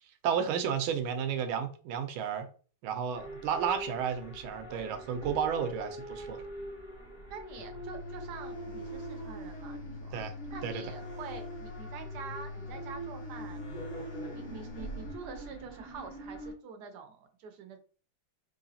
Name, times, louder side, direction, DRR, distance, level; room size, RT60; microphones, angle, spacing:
voice 1, 0.2-2.5 2.8-6.4 10.1-10.3 10.6-10.8, right 7 dB, 90° right, 1.5 m, -32 dB
sound 1, 3.1-16.5, right 2 dB, 30° left, 1.3 m, -43 dB
voice 2, 7.3-10.2 10.5-13.6 14.3-17.8, right 5 dB, 70° right, 1.0 m, -46 dB
sound 2, 7.6-15.2, left 4 dB, 85° left, 1.6 m, -44 dB
3.8 x 3.1 x 2.7 m
omnidirectional pair, 2.2 m